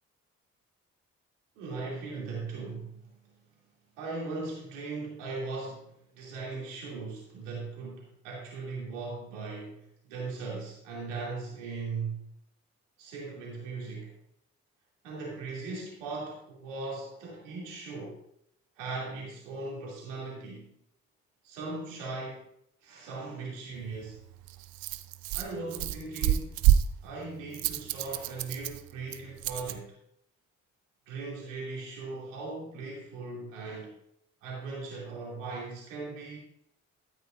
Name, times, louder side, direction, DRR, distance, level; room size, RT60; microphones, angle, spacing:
voice 1, 1.6-3.2 4.0-12.2 13.0-14.1 15.0-18.2 18.8-20.7 21.4-22.4 22.8-24.2 25.3-26.6 27.0-29.9 31.1-34.0 34.4-36.4, right 3 dB, 90° right, -4 dB, 2.8 m, -39 dB
Rattle, 23.7-29.8, right 11 dB, 70° right, 0.6 m, -29 dB
12.5 x 9.3 x 2.5 m, 0.72 s
hypercardioid pair, 40°, 36 cm